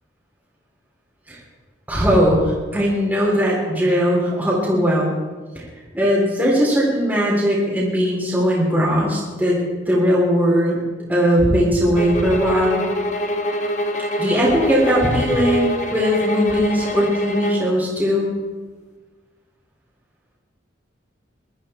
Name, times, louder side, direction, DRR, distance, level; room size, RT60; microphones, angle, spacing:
voice 1, 1.9-5.1 5.9-9.6 9.9-10.8 11.1-12.8 14.2-18.3, equal, 10° right, -6 dB, 3.6 m, -19 dB
sound 1, 11.9-17.7, equal, 40° left, 1.3 m, -25 dB
21.5 x 13.0 x 4.4 m, 1.3 s
head